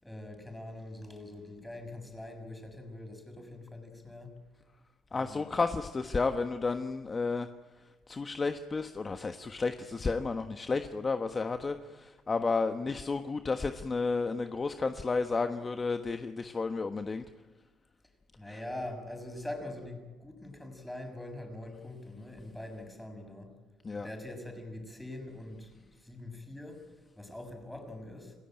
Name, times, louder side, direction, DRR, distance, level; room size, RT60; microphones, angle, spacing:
voice 1, 0.0-4.4 5.1-5.6 18.4-23.5 23.9-26.8 27.2-28.3, left 1 dB, 5° left, 5 dB, 6.5 m, -43 dB
voice 2, 5.1-7.5 8.1-17.2 23.8-24.1, left 4 dB, 30° left, 7 dB, 1.3 m, -32 dB
28.5 x 17.0 x 9.0 m, 1.3 s
cardioid pair, 85°, 0 cm